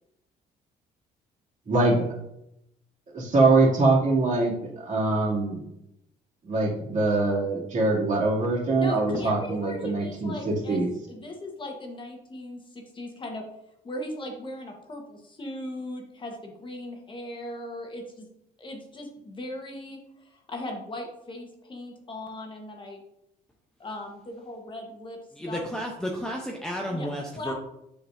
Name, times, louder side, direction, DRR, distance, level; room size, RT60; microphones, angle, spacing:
voice 1, 1.7-2.0 3.1-5.6 6.4-10.9, right 3 dB, 45° right, -5 dB, 2.4 m, -23 dB
voice 2, 8.7-13.4 13.8-18.2 18.6-20.0 20.3-23.0 23.8-25.2 25.5-25.6 26.9-27.1 27.3-27.5, left 1 dB, 30° left, 2 dB, 1.2 m, -38 dB
voice 3, 25.3-27.5, equal, 5° left, 0 dB, 0.7 m, -32 dB
7.5 x 5.4 x 2.6 m, 0.81 s
cardioid pair, 110°, 17 cm